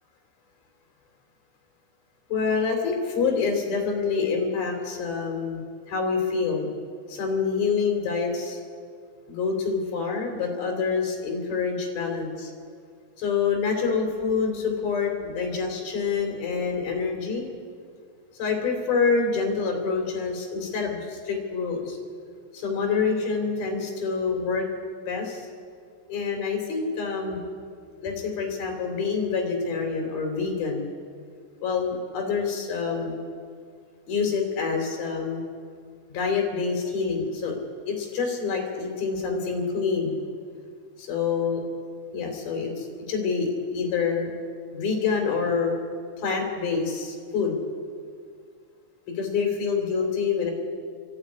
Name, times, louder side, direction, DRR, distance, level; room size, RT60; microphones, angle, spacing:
voice 1, 2.3-5.6 5.9-6.7 7.1-8.6 9.3-12.5 13.2-17.4 18.4-22.0 22.5-24.7 25.1-25.5 26.1-27.4 28.0-30.9 31.6-33.2 34.1-35.4 36.1-37.6 37.9-40.2 41.0-41.6 42.1-44.3 44.7-45.8 46.2-47.6 49.1-50.5, left 5 dB, 50° left, 2 dB, 4.7 m, -26 dB
29.5 x 11.5 x 9.7 m, 2.1 s
omnidirectional pair, 5.7 m